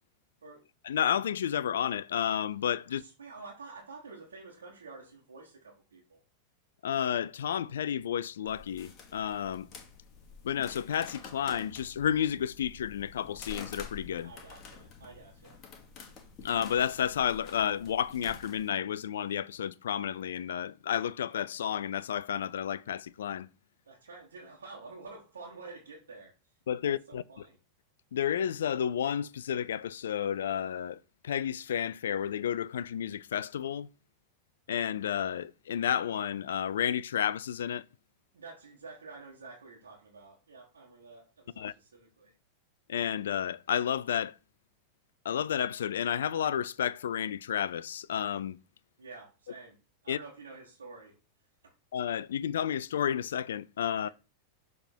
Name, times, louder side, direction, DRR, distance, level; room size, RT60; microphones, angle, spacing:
voice 1, 0.8-3.0 6.8-9.7 10.4-14.3 16.4-23.5 26.7-27.2 28.1-31.0 31.2-33.9 34.7-37.9 41.6-41.7 42.9-44.3 45.2-48.6 50.1-50.2 51.9-54.1, left 9 dB, 65° left, 0.3 m, -31 dB
voice 2, 2.9-6.2 14.2-15.6 23.9-26.3 26.8-27.6 38.3-42.3 49.0-49.8 50.0-51.2 51.6-51.7 54.0-54.1, right 3 dB, 70° right, 1.5 m, -49 dB
sound 1, 8.4-18.7, left 5 dB, 35° left, 1.7 m, -49 dB
6.7 x 3.6 x 4.4 m
figure-of-eight pair, 90°, 0 cm